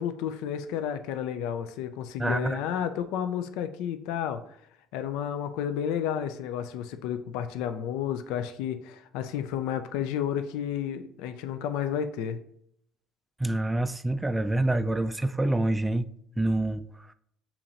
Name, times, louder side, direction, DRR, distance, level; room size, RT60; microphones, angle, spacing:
voice 1, 0.0-4.6 4.9-12.4, left 9 dB, 85° left, 0.3 m, -31 dB
voice 2, 2.2-2.6 13.4-16.1 16.4-17.1, right 1 dB, 15° right, 0.3 m, -27 dB
7.0 x 2.9 x 2.5 m
supercardioid pair, 85°, 0 cm